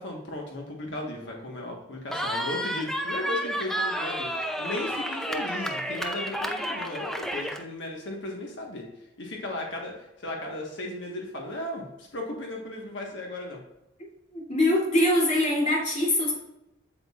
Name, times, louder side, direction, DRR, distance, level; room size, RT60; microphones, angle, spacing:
voice 1, 0.0-8.9 9.2-13.6, left 1 dB, 65° left, 0 dB, 1.5 m, -36 dB
Cheering, 2.1-7.6, equal, ahead, 0.5 m, -31 dB
voice 2, 14.3-16.3, left 1 dB, 40° left, -4 dB, 2.9 m, -23 dB
8.3 x 7.7 x 2.5 m, 0.92 s
head